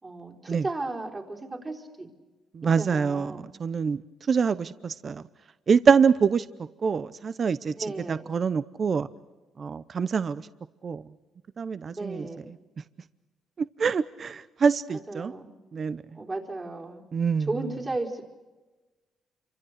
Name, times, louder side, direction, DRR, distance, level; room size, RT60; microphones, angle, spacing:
voice 1, 0.0-2.1 2.8-3.4 7.8-8.3 12.0-12.5 15.1-15.5 16.1-17.1 17.5-18.2, right 2 dB, 25° right, 1 dB, 4.1 m, -34 dB
voice 2, 2.5-4.0 4.3-5.2 5.7-6.5 6.8-7.7 8.1-9.1 9.6-10.5 10.8-11.0 11.6-12.6 13.6-15.3 15.7-16.0 17.1-17.7, right 6 dB, 45° right, 15 dB, 0.7 m, -25 dB
28.0 x 25.0 x 6.6 m, 1.2 s
cardioid pair, 90°, 0 cm